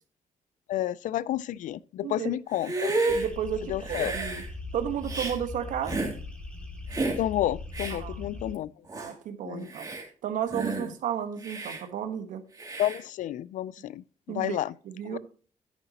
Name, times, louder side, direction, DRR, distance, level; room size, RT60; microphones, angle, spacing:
voice 1, 0.7-3.0 3.7-4.1 7.2-8.7 9.4-9.7 12.8-14.7 15.1-15.2, left 13 dB, 85° left, 0.4 m, -30 dB
Hiss, 2.5-3.3 3.8-4.5 5.0-5.4 5.8-6.2 6.9-7.2 7.7-8.0 8.5-8.6 8.9-9.1 9.6-10.0 10.5-10.9 11.4-11.8 12.6-13.0, right 2 dB, 30° right, 2.7 m, -31 dB
sound 1, 3.1-8.5, left 3 dB, 10° left, 2.2 m, -40 dB
voice 2, 3.1-4.4 4.7-6.0 7.9-8.4 8.9-9.9 10.2-12.4 14.3-14.6 14.8-15.2, right 9 dB, 90° right, 1.3 m, -33 dB
10.5 x 9.0 x 2.9 m
cardioid pair, 95°, 13 cm